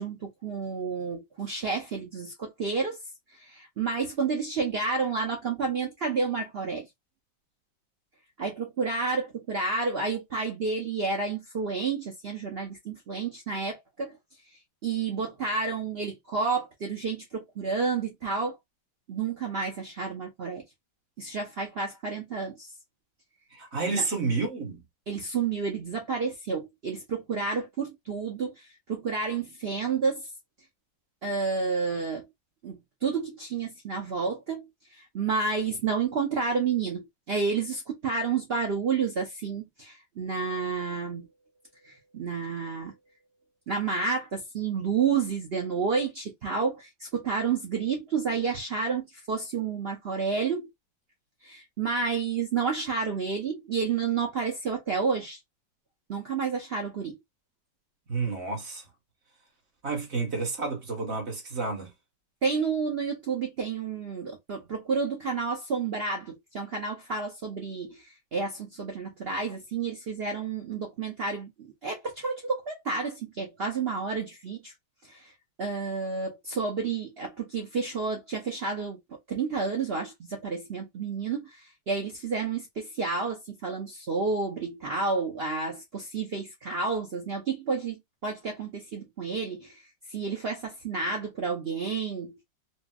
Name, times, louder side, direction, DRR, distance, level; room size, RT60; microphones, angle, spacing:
voice 1, 0.0-3.0 3.4-6.9 8.4-14.2 14.8-18.6 19.1-20.6 21.2-22.7 23.9-24.0 25.1-30.3 31.2-32.3 32.6-34.6 35.0-41.3 41.8-42.9 43.7-50.7 51.4-55.4 56.1-57.2 62.4-68.0 68.3-74.7 75.1-75.3 75.6-79.0 79.3-89.8 90.1-92.4, right 5 dB, 65° right, 0.5 m, -30 dB
voice 2, 23.5-24.8 58.1-58.8 59.8-61.9, right 4 dB, 45° right, 1.1 m, -30 dB
4.2 x 2.0 x 2.3 m
omnidirectional pair, 2.0 m